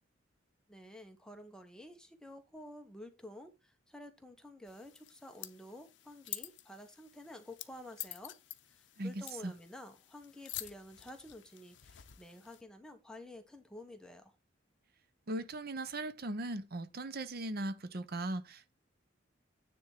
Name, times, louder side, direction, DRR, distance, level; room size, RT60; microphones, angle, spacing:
voice 1, 0.7-8.3 8.7-14.4, left 1 dB, 5° left, 1.1 m, -51 dB
sound 1, 4.7-12.6, left 15 dB, 65° left, 0.7 m, -49 dB
voice 2, 9.0-9.5 15.3-18.7, right 2 dB, 50° right, 0.7 m, -39 dB
9.6 x 3.6 x 5.8 m
head